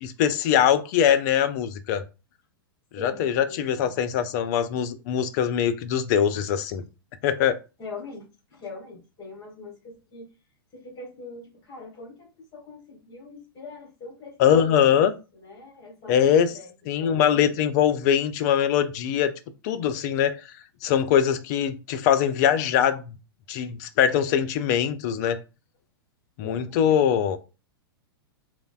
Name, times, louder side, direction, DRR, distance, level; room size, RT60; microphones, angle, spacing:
voice 1, 0.0-2.0 3.0-6.8 7.2-7.6 14.4-15.1 16.1-16.5 16.9-19.3 19.6-20.4 20.8-23.2 23.5-25.4 26.4-27.4, left 9 dB, 45° left, 0.4 m, -22 dB
voice 2, 3.0-3.9 7.8-8.2 8.5-10.3 10.7-15.0 15.3-16.7 17.0-17.6 26.4-27.4, left 3 dB, 30° left, 1.4 m, -42 dB
3.2 x 2.0 x 2.3 m
hypercardioid pair, 105°, 13 cm